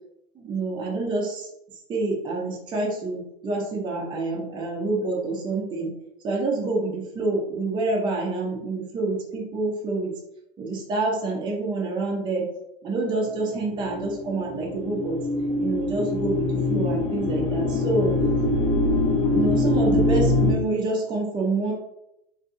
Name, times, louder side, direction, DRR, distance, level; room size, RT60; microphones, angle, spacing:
voice 1, 0.3-1.5 1.9-5.9 6.2-10.2 10.6-12.5 12.8-15.2 15.6-18.1 19.3-21.7, right 2 dB, 15° right, -2 dB, 0.6 m, -27 dB
sound 1, 13.3-20.5, left 2 dB, 65° left, 1.0 m, -23 dB
2.7 x 2.2 x 2.6 m, 0.81 s
hypercardioid pair, 120°, 31 cm